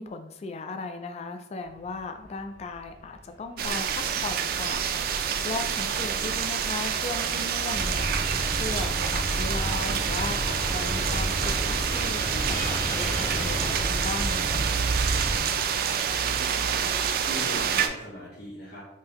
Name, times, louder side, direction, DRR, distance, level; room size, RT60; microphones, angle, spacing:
voice 1, 0.0-14.7, left 3 dB, 35° left, 7 dB, 0.3 m, -37 dB
Fixed-wing aircraft airplane, 1.6-13.8, equal, 20° left, 1.4 m, -40 dB
sound 1, 3.6-17.9, right 7 dB, 55° right, 0.3 m, -27 dB
sound 2, 7.7-15.4, equal, 20° right, 0.7 m, -32 dB
voice 2, 16.2-18.8, equal, 65° left, -7 dB, 0.9 m, -41 dB
3.6 x 2.7 x 3.0 m, 0.85 s
head